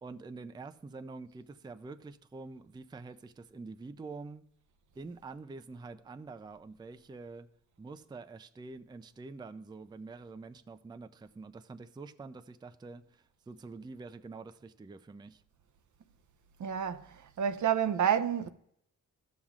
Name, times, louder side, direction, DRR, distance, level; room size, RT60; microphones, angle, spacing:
voice 1, 0.0-4.4 5.0-7.5 7.8-15.4, right 3 dB, 15° right, 0.4 m, -46 dB
voice 2, 16.6-18.5, right 9 dB, 65° right, 0.6 m, -29 dB
12.5 x 7.2 x 2.4 m
cardioid pair, 70°, 33 cm